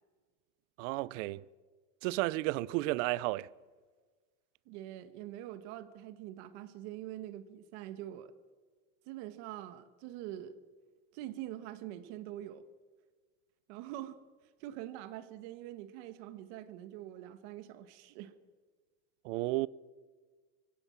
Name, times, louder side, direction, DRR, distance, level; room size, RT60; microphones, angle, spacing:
voice 1, 0.8-1.4 2.0-3.5 19.2-19.7, right 19 dB, 80° right, 0.6 m, -32 dB
voice 2, 4.6-8.3 9.0-10.6 11.1-12.7 13.7-14.2 14.6-18.3, right 13 dB, 60° right, 1.5 m, -44 dB
23.5 x 16.5 x 7.4 m
cardioid pair, 180°, 37 cm